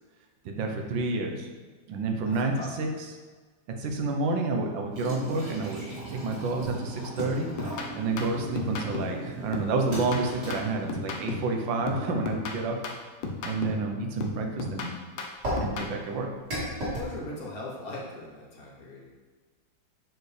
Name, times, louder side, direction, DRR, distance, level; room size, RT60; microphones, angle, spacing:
voice 1, 0.4-1.5 1.9-3.1 3.8-7.5 7.9-12.8 13.4-14.9 15.6-16.3, right 3 dB, 90° right, 3 dB, 1.6 m, -29 dB
voice 2, 2.2-2.7 16.9-19.1, left 2 dB, 55° left, -2 dB, 1.5 m, -40 dB
sound 1, 4.9-12.6 15.4-17.0, right 1 dB, 60° right, 2.7 m, -37 dB
sound 2, 6.6-6.9 7.2-9.2 9.5-11.6 11.9-13.9 14.2-16.0, left 3 dB, 85° left, 1.5 m, -35 dB
8.3 x 4.6 x 3.3 m, 1.4 s
omnidirectional pair, 2.0 m